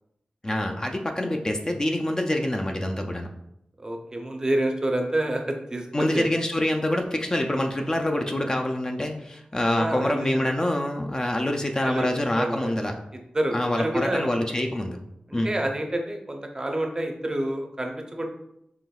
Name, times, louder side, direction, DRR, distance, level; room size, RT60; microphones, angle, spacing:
voice 1, 0.4-3.3 5.9-12.9 13.5-15.0 15.3-15.5, left 1 dB, 25° left, 3 dB, 0.4 m, -26 dB
voice 2, 3.8-6.3 9.8-10.5 11.8-12.1 12.3-12.7 13.3-14.3 15.3-18.3, right 1 dB, 25° right, 3 dB, 0.5 m, -28 dB
5.6 x 3.0 x 2.3 m, 0.80 s
wide cardioid pair, 105°, 3 cm